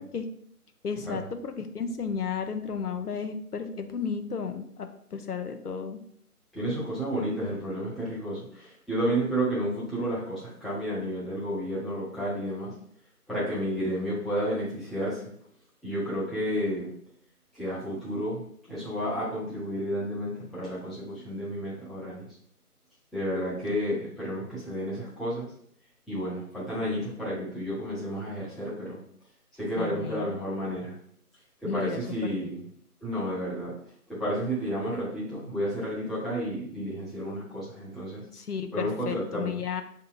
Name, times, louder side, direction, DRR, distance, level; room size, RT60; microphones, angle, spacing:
voice 1, 0.8-6.0 23.7-23.8 29.8-30.4 31.6-32.6 38.3-39.8, left 6 dB, 75° left, 7 dB, 0.6 m, -33 dB
voice 2, 6.5-12.7 13.3-15.2 15.8-16.9 17.5-22.3 23.1-25.5 26.1-29.0 29.5-30.9 31.6-32.6 33.0-33.7 34.1-38.2 38.7-39.6, equal, ahead, -10 dB, 0.6 m, -31 dB
5.8 x 2.7 x 2.3 m, 0.65 s
figure-of-eight pair, 160°, 46 cm